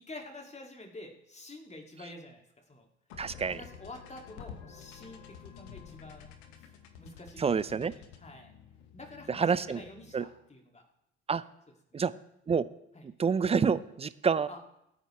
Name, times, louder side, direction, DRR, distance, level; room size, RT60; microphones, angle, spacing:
voice 1, 0.0-2.4 2.7-2.9 3.4-6.7 7.0-8.5 8.9-10.9 11.9-12.0 12.9-13.1 14.5-14.6, left 2 dB, 20° left, 2 dB, 2.6 m, -48 dB
sound 1, 3.1-10.4, left 8 dB, 65° left, 1.5 m, -50 dB
voice 2, 3.2-3.6 7.4-7.9 9.3-9.8 10.1-10.3 11.3-11.4 11.9-12.1 12.5-12.7 13.2-14.5, right 6 dB, 20° right, 16 dB, 0.6 m, -27 dB
22.0 x 9.1 x 3.3 m, 0.82 s
figure-of-eight pair, 50°, 33 cm